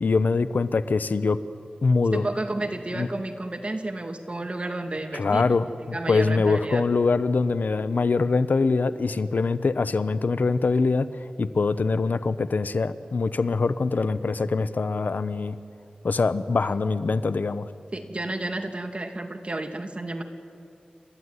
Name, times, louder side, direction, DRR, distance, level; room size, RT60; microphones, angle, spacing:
voice 1, 0.0-1.4 1.8-2.3 2.9-3.1 5.1-11.1 11.4-15.6 16.0-17.7, left 4 dB, 85° left, 13 dB, 0.8 m, -23 dB
voice 2, 2.1-5.6 5.9-6.8 17.9-20.2, right 2 dB, 45° right, 5 dB, 2.4 m, -31 dB
28.5 x 14.0 x 9.7 m, 2.6 s
wide cardioid pair, 50°, 3 cm